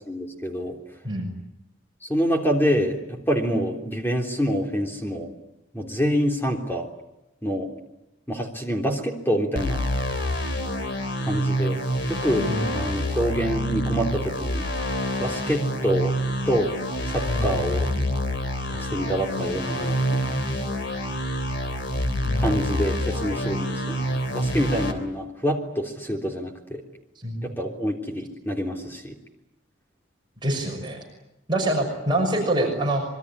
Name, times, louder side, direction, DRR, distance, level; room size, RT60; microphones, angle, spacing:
voice 1, 0.1-0.8 2.0-5.3 5.7-6.9 7.4-7.7 8.3-9.8 11.3-11.8 12.1-14.6 15.2-16.1 16.5-16.8 17.1-17.9 18.7-20.3 22.4-26.8 27.4-29.1, equal, 10° left, 2 dB, 3.4 m, -26 dB
sound 1, 9.6-24.9, equal, 60° left, 3.5 m, -27 dB
voice 2, 22.2-22.7 27.2-27.4 30.4-31.0 31.5-33.0, right 1 dB, 25° right, 0 dB, 6.1 m, -25 dB
26.0 x 22.5 x 9.9 m, 0.91 s
head